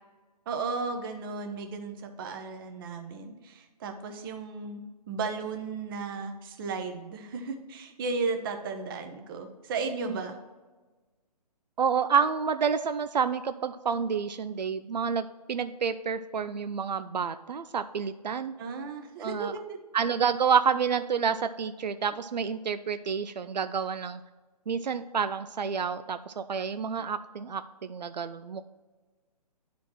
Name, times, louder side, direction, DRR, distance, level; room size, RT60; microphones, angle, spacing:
voice 1, 0.5-10.4 18.6-19.8, right 4 dB, 35° right, 6 dB, 0.9 m, -35 dB
voice 2, 11.8-18.5 19.2-19.5 19.9-24.2 24.7-28.6, right 6 dB, 85° right, 11 dB, 0.5 m, -29 dB
10.0 x 4.3 x 4.3 m, 1.3 s
figure-of-eight pair, 145°, 21 cm